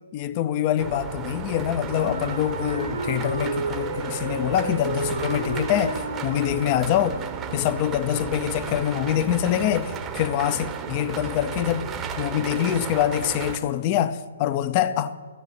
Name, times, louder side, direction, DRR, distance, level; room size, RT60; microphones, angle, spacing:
voice 1, 0.0-7.2 7.5-11.9 12.2-15.2, left 11 dB, 30° left, 0.6 m, -25 dB
sound 1, 0.8-13.6, right 6 dB, 15° right, 0.9 m, -34 dB
Wind instrument woodwind instrument, 1.8-7.6, right 4 dB, 90° right, 2.3 m, -32 dB
13.5 x 6.9 x 8.8 m
hypercardioid pair, 150°, 0 cm